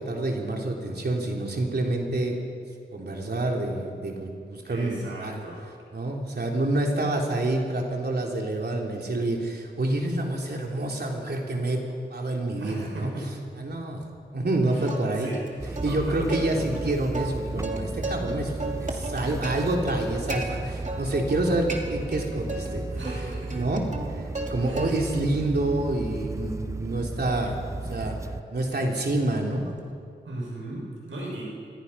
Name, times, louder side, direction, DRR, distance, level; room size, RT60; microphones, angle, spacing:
voice 1, 0.0-2.4 2.9-5.4 5.9-11.8 12.1-13.1 13.6-14.0 14.3-15.3 15.8-18.5 18.8-23.0 23.5-23.8 24.2-27.6 27.9-28.1 28.5-29.6, right 2 dB, 55° right, 0 dB, 3.6 m, -27 dB
voice 2, 4.7-5.6 12.6-13.4 14.7-15.4 15.9-16.2 22.9-23.6 24.6-25.0 30.2-31.4, right 1 dB, 90° right, -2 dB, 7.0 m, -38 dB
Plucked string instrument, 14.8-15.5 15.8-15.9 16.3-18.3 18.6-20.4 20.8-21.4 21.7-22.7 23.0-24.5 24.8-25.3 25.7-29.9, right 2 dB, 40° right, 2.8 m, -36 dB
sound 1, 15.6-28.4, right 2 dB, 15° right, 0.5 m, -35 dB
25.0 x 21.0 x 5.8 m, 2.4 s
wide cardioid pair, 75°, 20 cm